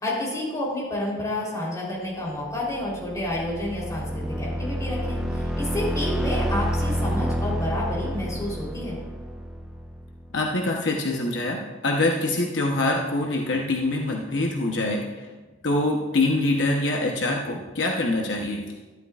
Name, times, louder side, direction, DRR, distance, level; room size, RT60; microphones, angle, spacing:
voice 1, 0.0-5.2 5.6-9.0, left 1 dB, 20° left, -5 dB, 3.5 m, -29 dB
sound 1, 2.6-10.3, equal, 5° right, 0.9 m, -29 dB
voice 2, 10.3-15.3 15.6-18.6, left 2 dB, 70° left, 1 dB, 0.9 m, -24 dB
12.0 x 11.5 x 2.4 m, 1.2 s
head